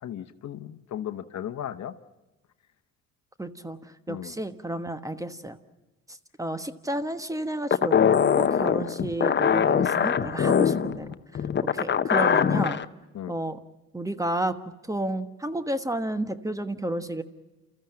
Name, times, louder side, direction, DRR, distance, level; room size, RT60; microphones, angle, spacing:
voice 1, 0.0-1.9 4.1-4.4 13.1-13.3, left 10 dB, 55° left, 11 dB, 1.1 m, -36 dB
voice 2, 3.4-5.6 6.1-11.1 11.7-12.8 13.3-13.6 13.9-14.6 14.9-17.2, right 1 dB, 10° right, 11 dB, 1.3 m, -31 dB
sound 1, 7.7-12.8, left 7 dB, 35° left, 0.8 m, -22 dB
29.0 x 14.0 x 8.9 m, 1.1 s
supercardioid pair, 65°, 34 cm